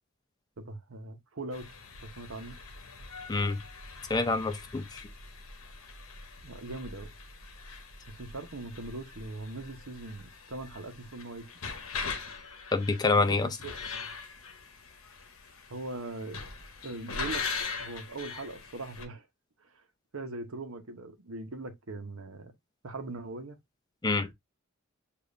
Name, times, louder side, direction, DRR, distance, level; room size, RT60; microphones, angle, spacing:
voice 1, 0.6-2.6 6.4-7.1 8.1-11.5 13.1-14.1 15.7-16.4 16.8-17.5 17.8-19.3 19.6-19.8 20.1-22.5 22.8-23.6, right 2 dB, 70° right, 0.8 m, -41 dB
sound 1, 1.5-19.1, left 4 dB, 80° left, 0.9 m, -42 dB
voice 2, 4.1-5.0 12.7-13.5 24.0-24.3, left 3 dB, 20° left, 0.4 m, -26 dB
6.9 x 2.5 x 2.5 m
head